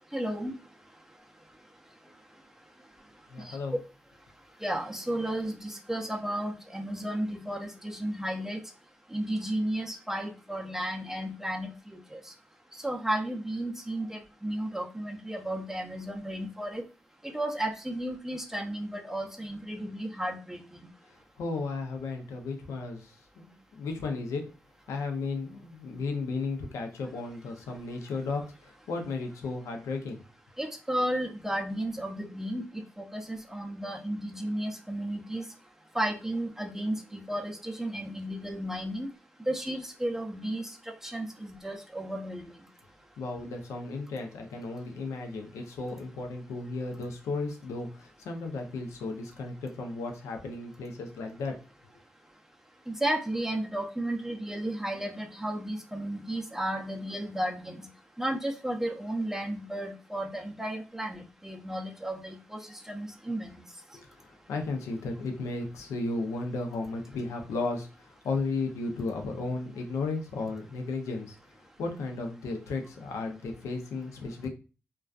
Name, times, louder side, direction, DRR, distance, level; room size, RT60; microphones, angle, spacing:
voice 1, 0.1-0.5 3.5-3.6 4.6-8.6 9.1-12.2 12.8-16.8 17.2-20.9 30.6-35.4 35.9-39.1 39.5-40.7 41.0-42.5 52.9-57.9 58.2-62.6 62.9-63.5, right 1 dB, 10° right, 1 dB, 0.5 m, -33 dB
voice 2, 3.3-3.8 21.4-24.5 24.9-30.2 43.2-51.6 63.9-71.4 71.8-74.5, left 3 dB, 85° left, 4 dB, 0.5 m, -34 dB
2.4 x 2.3 x 2.3 m, 0.33 s
supercardioid pair, 45°, 5 cm